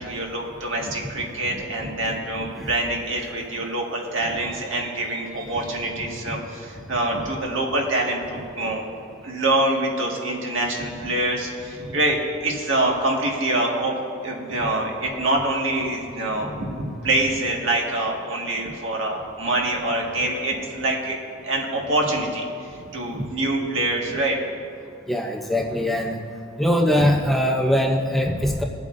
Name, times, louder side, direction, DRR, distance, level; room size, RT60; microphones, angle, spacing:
voice 1, 0.0-8.8 9.2-12.2 12.4-14.0 14.2-21.2 21.4-22.4 22.7-24.4, right 2 dB, 65° right, -1 dB, 1.9 m, -25 dB
voice 2, 25.1-26.2 26.6-28.6, equal, ahead, 0 dB, 0.6 m, -21 dB
22.0 x 8.4 x 2.6 m, 2.4 s
head